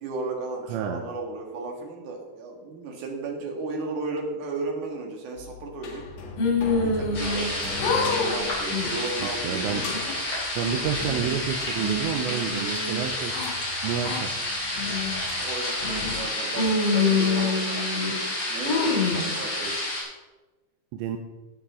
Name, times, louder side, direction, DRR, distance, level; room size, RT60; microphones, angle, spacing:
voice 1, 0.0-6.1 6.8-9.7 15.3-19.7, right 3 dB, 55° right, 1 dB, 2.7 m, -34 dB
voice 2, 0.7-1.0 9.2-9.8 10.6-13.3 13.8-14.3 20.9-21.2, right 8 dB, 85° right, 5 dB, 2.9 m, -29 dB
sound 1, 5.4-15.5, left 4 dB, 55° left, 1.9 m, -40 dB
sound 2, 6.4-7.5 7.8-8.3 8.7-9.1 9.6-10.1 10.6-11.4 11.8-13.5 14.0-14.2 14.8-15.2 15.8-16.2 16.6-18.2 18.7-19.2, left 3 dB, 80° left, 4.2 m, -26 dB
sound 3, 7.1-20.0, left 1 dB, 25° left, 4.8 m, -30 dB
15.0 x 8.9 x 3.7 m, 1.2 s
omnidirectional pair, 5.2 m